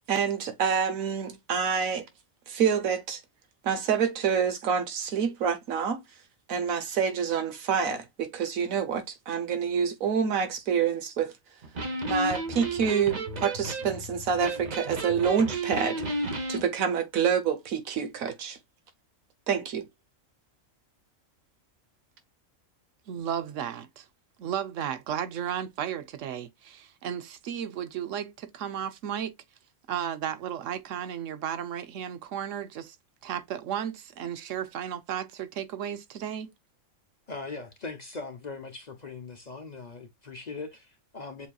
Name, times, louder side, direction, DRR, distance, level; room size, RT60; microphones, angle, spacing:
voice 1, 0.1-2.1 2.5-3.2 3.6-6.0 6.5-11.3 12.1-16.0 16.5-18.6 19.5-19.9, right 7 dB, 90° right, 1.4 m, -27 dB
Electric guitar, 11.6-16.6, right 2 dB, 35° right, 0.9 m, -33 dB
voice 2, 23.1-24.1 24.4-29.4 29.9-33.0 33.2-36.5, right 9 dB, 70° right, 1.0 m, -34 dB
voice 3, 37.3-41.5, left 3 dB, 40° left, 0.8 m, -40 dB
7.1 x 2.7 x 2.3 m
omnidirectional pair, 1.4 m